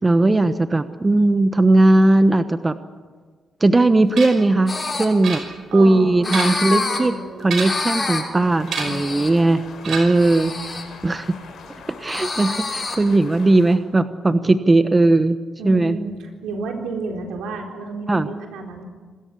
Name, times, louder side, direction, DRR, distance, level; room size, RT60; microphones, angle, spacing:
voice 1, 0.0-2.8 3.6-4.7 5.0-5.4 5.7-7.1 7.4-10.5 11.0-11.3 11.9-15.4 15.6-16.0 18.1-18.3, right 2 dB, 25° right, 11 dB, 1.1 m, -17 dB
sound 1, 4.2-4.5 5.2-5.8 6.2-6.8 7.4-8.0 8.7-9.1 9.8-10.3, right 5 dB, 70° right, 5.7 m, -29 dB
sound 2, 4.7-5.1 6.2-7.0 7.6-8.2 8.7-9.3 10.1-10.8 12.1-12.9, left 3 dB, 35° left, 6.3 m, -26 dB
voice 2, 5.7-6.4 6.7-7.5 8.3-9.0 10.4-10.7 15.6-18.8, right 3 dB, 85° right, 2 dB, 4.0 m, -32 dB
sound 3, 8.4-13.7, left 5 dB, 75° left, 5.2 m, -41 dB
26.5 x 13.5 x 8.5 m, 1.5 s
supercardioid pair, 65°, 0 cm